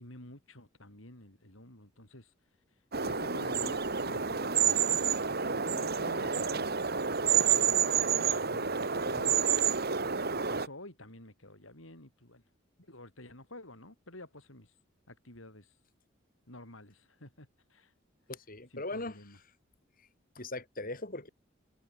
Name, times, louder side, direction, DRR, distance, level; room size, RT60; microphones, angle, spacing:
voice 1, 0.0-2.3 3.0-5.1 5.4-6.9 7.7-9.4 10.5-12.4 12.8-14.7 15.1-15.7 16.5-17.9 18.7-19.4, left 1 dB, 85° left, 7.9 m, -50 dB
sound 1, 2.9-10.7, right 7 dB, 50° right, 2.3 m, -29 dB
voice 2, 18.3-19.2 20.0-20.1 20.3-21.3, left 2 dB, 45° left, 6.1 m, -39 dB
head